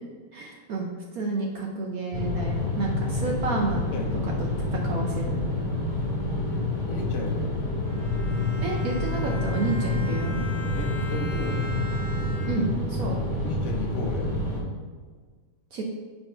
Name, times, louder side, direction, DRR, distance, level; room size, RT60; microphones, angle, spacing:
voice 1, 0.3-4.0 4.2-4.3 4.6-5.3 8.6-10.4 12.4-13.2 15.7-15.8, right 3 dB, 70° right, -1 dB, 0.8 m, -30 dB
sound 1, 2.1-14.6, left 2 dB, 30° left, 1.4 m, -28 dB
voice 2, 3.9-4.3 6.9-7.7 10.6-11.8 13.4-14.4, left 2 dB, 70° left, 2 dB, 0.7 m, -35 dB
Bowed string instrument, 7.8-12.9, left 2 dB, 30° right, 1.8 m, -41 dB
4.5 x 4.1 x 5.4 m, 1.5 s
omnidirectional pair, 2.3 m